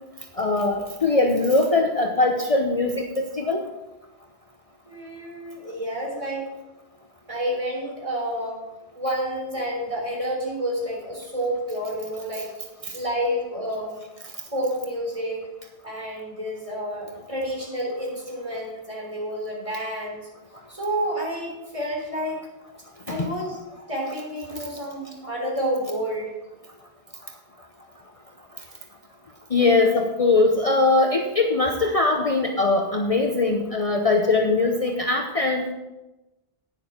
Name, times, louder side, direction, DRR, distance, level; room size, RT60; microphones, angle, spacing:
voice 1, 0.4-3.6 12.8-12.9 23.1-23.3 29.5-35.7, left 3 dB, 35° left, 2 dB, 0.9 m, -21 dB
voice 2, 4.9-6.5 7.3-8.6 9.0-12.5 12.9-14.0 14.5-15.5 15.8-20.2 20.7-22.4 23.1-23.6 23.9-26.3, equal, 30° right, -2 dB, 3.8 m, -29 dB
11.0 x 9.9 x 4.4 m, 1.0 s
omnidirectional pair, 1.1 m